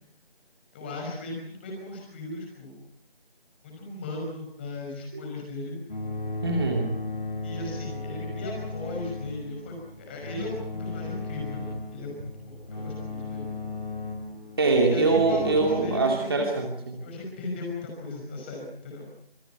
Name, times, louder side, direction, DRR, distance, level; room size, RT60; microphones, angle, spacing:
voice 1, 0.7-2.8 3.6-5.8 7.4-13.4 14.9-16.5 17.0-19.0, left 2 dB, 10° left, 0 dB, 5.4 m, -37 dB
sound 1, 5.9-16.0, left 3 dB, 50° left, 7.6 m, -36 dB
voice 2, 6.4-6.9 14.6-17.0, right 3 dB, 25° right, 2 dB, 2.6 m, -23 dB
27.0 x 24.5 x 5.9 m, 0.63 s
figure-of-eight pair, 170°, 30 cm